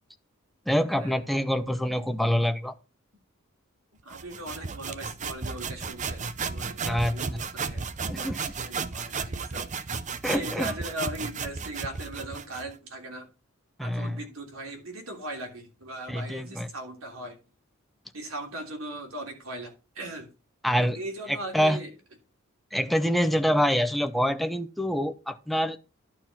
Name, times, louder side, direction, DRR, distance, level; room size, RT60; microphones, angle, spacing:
voice 1, 0.7-2.7 6.8-7.4 8.1-8.4 10.2-10.7 13.8-14.2 16.1-16.7 20.6-21.0 21.3-21.8 22.7-25.8, equal, ahead, 0.7 m, -26 dB
voice 2, 4.0-9.7 10.2-13.3 13.8-17.4 18.1-20.3 20.8-21.9, right 1 dB, 80° right, 3.2 m, -39 dB
sound 1, 4.1-12.7, right 5 dB, 35° right, 0.7 m, -34 dB
11.5 x 4.5 x 5.7 m
head